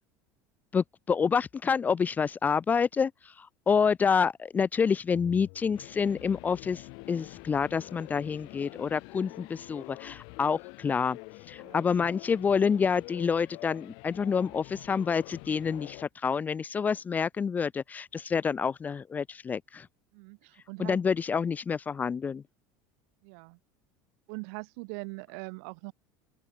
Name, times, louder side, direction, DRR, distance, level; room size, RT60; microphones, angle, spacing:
voice 1, 0.7-3.1 3.4-11.2 11.5-19.9 20.8-22.4, left 6 dB, 20° left, 0.7 m, -28 dB
sound 1, 5.1-16.1, left 34 dB, 60° left, 1.8 m, -46 dB
voice 2, 20.1-21.0 23.2-23.6 24.3-25.9, right 39 dB, 70° right, 2.5 m, -41 dB
open air
cardioid pair, 150°, 9 cm